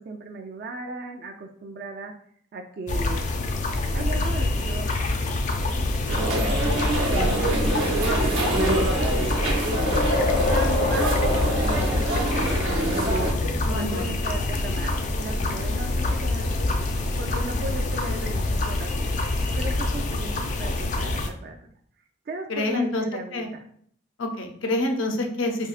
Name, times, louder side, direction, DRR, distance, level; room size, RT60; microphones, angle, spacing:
voice 1, 0.0-2.1 2.5-3.2 3.9-4.9 5.1-5.4 6.1-9.7 10.0-12.5 13.4-19.2 19.5-21.5 22.3-23.6, right 3 dB, 50° right, 3 dB, 0.3 m, -37 dB
sound 1, 2.9-21.3, left 2 dB, 40° left, 0.3 m, -26 dB
sound 2, 6.1-13.3, right 1 dB, 85° right, 0.8 m, -25 dB
voice 2, 13.6-14.1 22.5-23.0 23.3-23.5 24.2-25.7, left 2 dB, 85° left, 4 dB, 0.6 m, -27 dB
4.4 x 2.7 x 2.4 m, 0.63 s
head